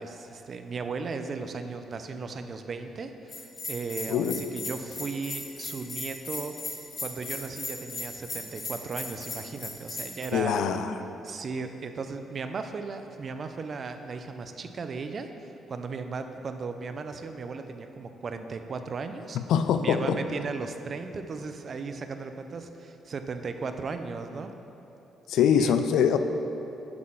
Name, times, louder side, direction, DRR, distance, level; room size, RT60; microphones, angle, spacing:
voice 1, 0.0-6.5 7.0-10.5 11.2-19.4 19.8-24.5 25.6-25.7, right 4 dB, 45° right, 7 dB, 0.5 m, -36 dB
Bell, 3.3-10.3, left 2 dB, 50° left, 1.6 m, -37 dB
voice 2, 4.1-4.4 10.3-11.0 19.3-20.2 25.3-26.2, left 8 dB, 80° left, 9 dB, 0.4 m, -24 dB
9.5 x 3.9 x 6.4 m, 3.0 s
cardioid pair, 90°, 0 cm